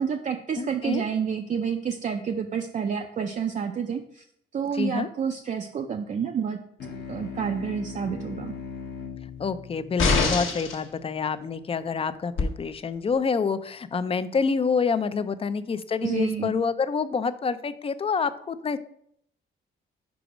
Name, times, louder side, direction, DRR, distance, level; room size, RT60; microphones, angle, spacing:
voice 1, 0.0-4.3 4.5-6.6 7.1-8.5 16.0-16.5, right 7 dB, 40° right, 4 dB, 0.4 m, -29 dB
voice 2, 0.6-1.0 4.7-5.1 9.4-18.8, left 5 dB, 30° left, 13 dB, 0.4 m, -27 dB
sound 1, 6.8-11.7, left 5 dB, 55° left, 0.9 m, -40 dB
sound 2, 10.0-10.8 12.4-12.5, left 4 dB, 80° left, 1.2 m, -23 dB
5.0 x 4.7 x 5.0 m, 0.70 s
cardioid pair, 90°, 20 cm